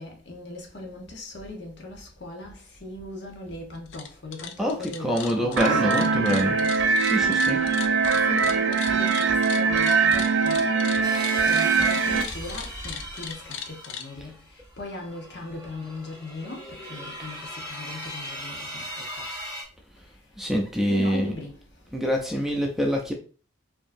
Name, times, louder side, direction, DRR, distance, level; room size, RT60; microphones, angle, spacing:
voice 1, 0.0-6.9 7.2-7.7 8.2-10.6 11.4-14.3 14.8-18.8 20.9-21.6, left 2 dB, 65° left, 1.0 m, -39 dB
sound 1, 3.8-4.1 4.3-14.1, left 8 dB, 85° left, 0.5 m, -38 dB
voice 2, 4.6-6.6 7.0-7.6 20.4-21.3 21.9-23.1, equal, ahead, 0.5 m, -25 dB
sound 2, 5.6-12.2, right 5 dB, 70° right, 0.5 m, -22 dB
sound 3, 11.0-19.6, equal, 20° left, 1.5 m, -39 dB
4.5 x 2.8 x 2.6 m
head